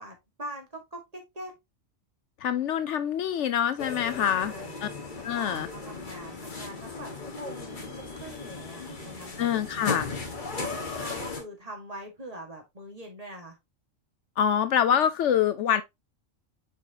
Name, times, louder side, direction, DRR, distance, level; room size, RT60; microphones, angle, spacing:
voice 1, 0.0-1.6 4.2-4.8 5.1-9.3 9.7-10.0 10.5-13.6, right 1 dB, 30° right, 2.0 m, -43 dB
voice 2, 2.4-4.5 4.8-4.9 5.2-5.7 9.4-10.2 14.4-15.8, left 9 dB, 70° left, 0.9 m, -25 dB
sound 1, 3.8-11.4, left 4 dB, 40° left, 1.6 m, -37 dB
6.8 x 4.7 x 2.9 m
omnidirectional pair, 1.3 m